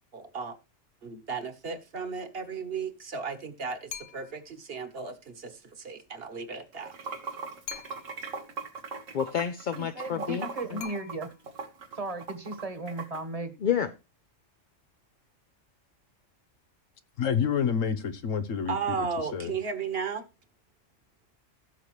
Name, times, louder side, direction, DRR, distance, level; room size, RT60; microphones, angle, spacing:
voice 1, 0.1-0.5 1.0-6.9 18.7-20.2, right 5 dB, 50° right, 1.6 m, -35 dB
sound 1, 3.9-4.5 7.7-8.4 10.8-11.6, left 9 dB, 70° left, 1.1 m, -43 dB
Water / Sink (filling or washing), 6.7-13.2, right 4 dB, 85° right, 1.9 m, -39 dB
voice 2, 9.1-10.8 13.6-13.9, left 8 dB, 50° left, 0.6 m, -29 dB
voice 3, 9.7-11.3 11.9-13.5, right 2 dB, 30° right, 1.4 m, -36 dB
voice 4, 17.2-19.5, left 7 dB, 90° left, 1.3 m, -29 dB
16.0 x 6.6 x 3.2 m
omnidirectional pair, 1.3 m